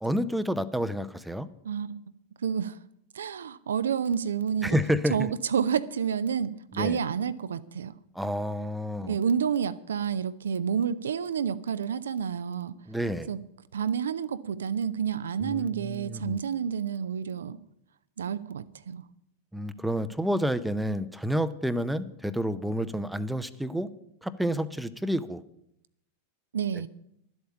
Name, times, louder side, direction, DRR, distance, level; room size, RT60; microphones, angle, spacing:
voice 1, 0.0-1.5 4.6-5.3 6.7-7.0 8.1-9.2 12.9-13.3 15.4-16.4 19.5-23.9 24.2-25.4, equal, 5° right, 0.7 m, -29 dB
voice 2, 1.6-2.0 2.4-2.8 3.1-4.8 5.1-7.9 9.0-12.8 13.3-13.4 13.7-17.6 18.2-19.0 26.5-26.9, right 7 dB, 65° right, 0.5 m, -29 dB
12.0 x 8.0 x 8.5 m
figure-of-eight pair, 90°, 0 cm